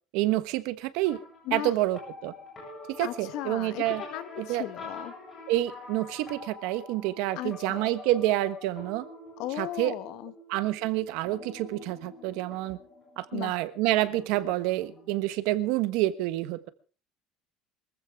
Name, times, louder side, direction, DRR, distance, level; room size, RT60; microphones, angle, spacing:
voice 1, 0.1-1.2 1.5-2.3 2.9-4.0 4.4-4.7 5.5-9.0 9.6-9.9 10.5-12.8 13.2-16.7, right 15 dB, 75° right, 12 dB, 1.2 m, -28 dB
sound 1, 1.1-15.3, left 2 dB, 25° left, 7.8 m, -46 dB
voice 2, 3.0-5.1 7.4-7.9 9.4-10.3 13.3-13.6, left 14 dB, 60° left, 13 dB, 1.2 m, -36 dB
23.5 x 14.5 x 3.6 m, 0.38 s
cardioid pair, 175°, 0 cm